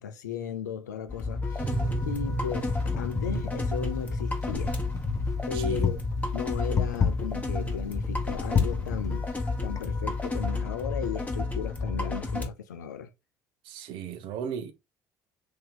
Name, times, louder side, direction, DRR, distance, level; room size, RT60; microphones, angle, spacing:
voice 1, 0.0-1.8 2.0-4.8 5.5-6.0 6.3-9.3 9.6-13.1, left 8 dB, 85° left, 0.4 m, -36 dB
sound 1, 1.1-12.5, left 3 dB, 15° left, 1.1 m, -31 dB
Wind, 1.5-10.4, left 6 dB, 35° left, 0.7 m, -33 dB
sound 2, 1.6-9.3, right 6 dB, 45° right, 1.6 m, -38 dB
voice 2, 5.5-5.9 13.6-14.7, right 8 dB, 65° right, 0.6 m, -36 dB
2.8 x 2.7 x 3.8 m
hypercardioid pair, 60°, 9 cm